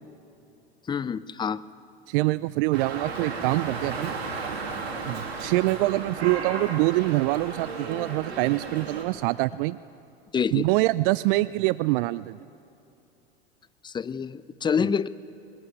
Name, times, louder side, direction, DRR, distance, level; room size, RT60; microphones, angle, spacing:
voice 1, 0.9-1.6 10.3-10.7 13.8-15.1, left 6 dB, 15° left, 17 dB, 0.5 m, -27 dB
voice 2, 2.1-4.1 5.1-9.8 10.5-12.4, right 20 dB, 60° right, 18 dB, 0.4 m, -25 dB
Dog, 2.7-9.0, right 4 dB, 85° right, 2.7 m, -34 dB
20.5 x 15.0 x 9.4 m, 2.7 s
hypercardioid pair, 90°, 31 cm